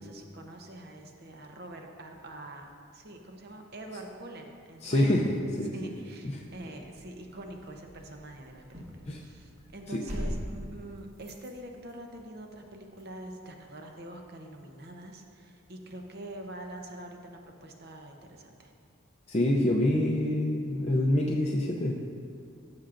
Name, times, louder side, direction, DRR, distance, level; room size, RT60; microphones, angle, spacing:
voice 1, 0.0-5.3 5.7-18.7, right 1 dB, 50° right, 3 dB, 0.8 m, -45 dB
voice 2, 4.8-5.3 5.6-6.0 6.2-6.4 9.1-9.2 19.3-22.0, left 1 dB, 30° left, -3 dB, 0.5 m, -26 dB
sound 1, 6.6-13.1, equal, 30° right, 1.4 m, -42 dB
14.0 x 6.4 x 2.5 m, 2.3 s
head